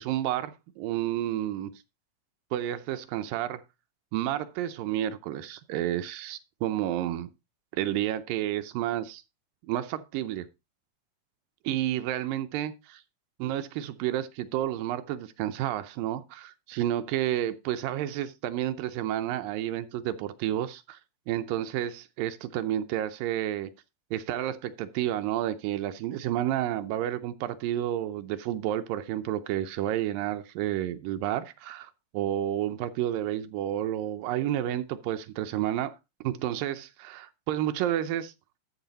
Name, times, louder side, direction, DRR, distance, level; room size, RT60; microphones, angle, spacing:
voice 1, 0.0-1.7 2.5-3.6 4.1-7.3 7.7-9.2 9.7-10.5 11.6-13.0 13.4-21.0 21.3-23.7 24.1-36.0 36.2-38.3, right 12 dB, 85° right, 2.4 m, -30 dB
13.0 x 5.4 x 3.9 m
omnidirectional pair, 4.0 m